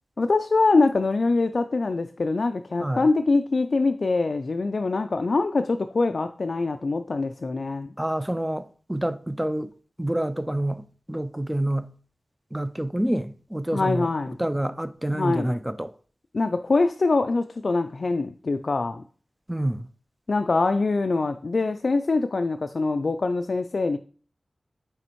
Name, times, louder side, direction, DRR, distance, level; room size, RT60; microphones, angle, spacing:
voice 1, 0.2-7.9 13.7-14.4 15.1-15.6 16.3-19.0 20.3-24.0, left 3 dB, 65° left, 0.3 m, -24 dB
voice 2, 8.0-9.7 10.0-11.9 12.5-14.1 14.4-15.9 19.5-19.9, right 1 dB, 10° right, 0.5 m, -27 dB
9.0 x 3.4 x 3.0 m
cardioid pair, 45°, 0 cm